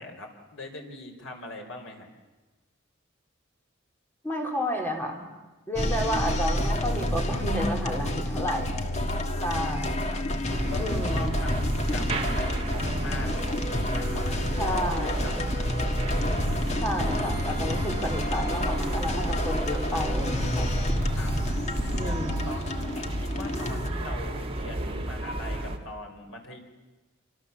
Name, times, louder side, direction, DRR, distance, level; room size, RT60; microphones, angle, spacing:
voice 1, 0.0-2.1 8.4-9.8 10.1-10.2 10.7-15.5 16.1-17.0 17.7-19.1 21.1-21.3 22.0-26.6, left 1 dB, 75° left, 3 dB, 4.9 m, -42 dB
voice 2, 4.2-5.3 5.7-8.7 9.4-10.0 10.8-11.4 14.6-15.3 16.8-20.7 21.9-22.4, equal, 10° left, 1 dB, 4.0 m, -31 dB
sound 1, 5.8-23.9, left 1 dB, 35° left, 1.7 m, -29 dB
sound 2, 10.5-25.8, right 1 dB, 25° right, 2.0 m, -33 dB
27.5 x 25.0 x 7.3 m, 1.2 s
head